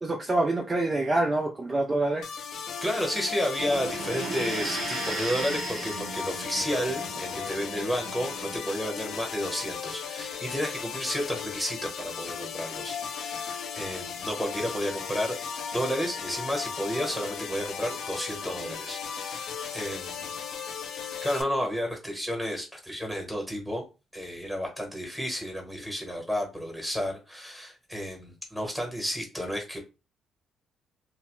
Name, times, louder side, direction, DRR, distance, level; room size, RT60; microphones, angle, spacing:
voice 1, 0.0-2.3, right 2 dB, 25° right, 0 dB, 0.6 m, -26 dB
sound 1, 2.2-21.4, left 6 dB, 75° left, 0.5 m, -36 dB
voice 2, 2.5-15.4 15.7-20.4 21.2-23.8 24.1-29.8, equal, ahead, 2 dB, 1.2 m, -32 dB
sound 2, 3.6-8.6, right 3 dB, 85° right, 0.9 m, -36 dB
2.8 x 2.2 x 3.0 m, 0.29 s
cardioid pair, 90°, 0 cm